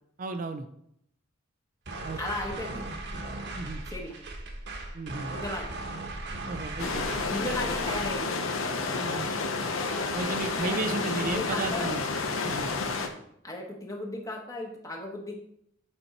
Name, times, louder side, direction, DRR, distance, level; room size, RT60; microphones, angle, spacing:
voice 1, 0.2-0.7 2.0-2.2 3.5-3.8 4.9-5.4 6.5-7.1 9.0-9.3 10.1-12.0 12.4-12.7, right 3 dB, 45° right, 7 dB, 0.5 m, -34 dB
sound 1, 1.9-8.2, right 2 dB, 60° right, 1.2 m, -38 dB
voice 2, 2.2-2.9 3.9-4.2 5.3-5.8 7.0-8.4 10.6-11.9 13.4-15.4, left 1 dB, 20° left, 1 dB, 1.2 m, -36 dB
sound 2, 6.8-13.1, left 4 dB, 85° left, 0.9 m, -30 dB
8.0 x 4.4 x 4.3 m, 0.73 s
head